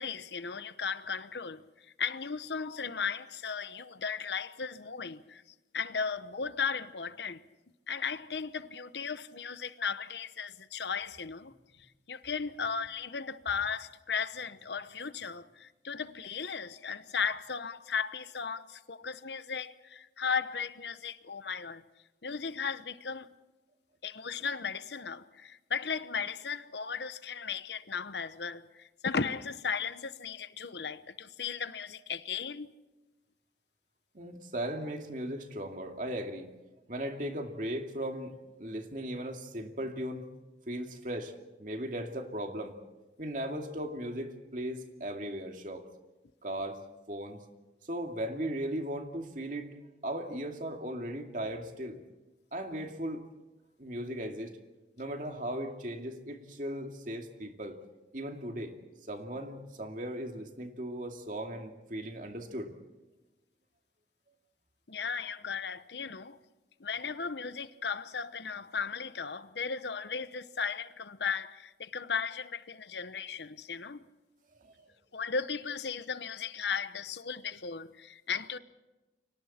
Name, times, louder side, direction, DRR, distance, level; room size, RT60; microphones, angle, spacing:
voice 1, 0.0-5.4 5.7-7.4 7.9-11.5 11.8-21.8 22.2-23.3 24.0-32.7 64.9-66.4 66.8-74.1 75.1-78.6, left 6 dB, 75° left, 1.0 m, -36 dB
voice 2, 34.1-36.5 36.9-40.3 40.7-41.3 41.6-42.8 43.2-45.9 46.4-46.8 47.1-47.4 47.9-49.8 50.0-52.0 52.5-53.3 53.8-54.6 55.0-57.8 58.1-58.8 59.1-62.7 74.6-74.7, right 1 dB, 45° right, 2.4 m, -37 dB
30.0 x 24.5 x 4.4 m
head